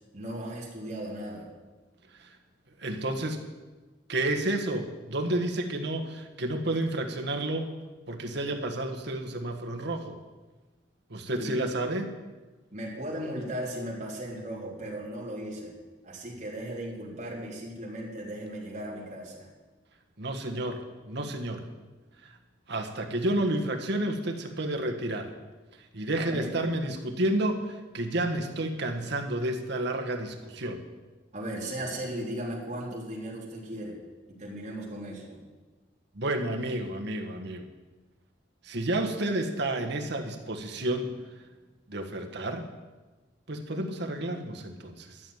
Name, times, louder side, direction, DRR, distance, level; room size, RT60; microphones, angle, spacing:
voice 1, 0.1-1.5 11.3-11.5 12.7-15.7 16.0-19.5 26.2-26.5 31.3-34.0 34.4-35.4, right 1 dB, 40° right, -3 dB, 3.5 m, -36 dB
voice 2, 2.8-3.4 4.1-7.7 8.1-10.2 11.1-12.1 20.2-20.8 21.1-21.6 22.7-25.3 25.9-30.8 36.1-37.6 38.6-41.1 41.9-42.7 43.5-45.2, right 1 dB, 60° right, 4 dB, 1.5 m, -30 dB
13.0 x 7.2 x 9.2 m, 1.2 s
head